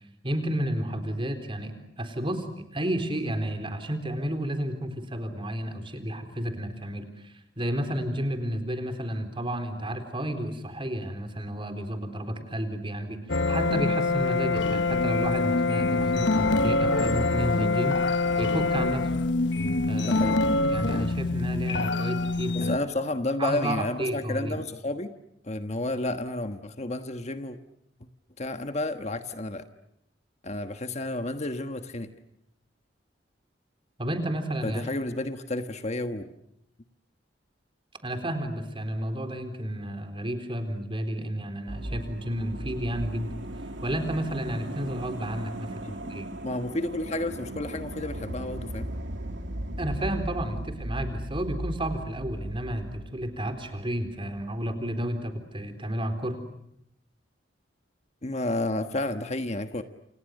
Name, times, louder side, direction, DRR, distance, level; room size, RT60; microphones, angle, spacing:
voice 1, 0.2-18.0 18.4-19.1 19.9-20.2 20.7-22.7 23.4-24.6 34.0-34.8 38.0-43.3 43.8-46.2 49.8-56.4, right 1 dB, 30° right, 7 dB, 4.0 m, -31 dB
sound 1, 13.3-22.8, left 3 dB, 80° left, 1.2 m, -25 dB
voice 2, 20.0-20.4 22.5-25.1 25.4-27.6 28.4-29.6 30.4-32.1 34.6-36.3 45.8-46.1 46.4-48.9 58.2-59.8, left 2 dB, 40° left, 8 dB, 1.4 m, -31 dB
sound 2, 41.7-54.1 54.4-54.5, right 1 dB, 90° right, 2.3 m, -37 dB
29.0 x 28.5 x 6.6 m, 0.77 s
head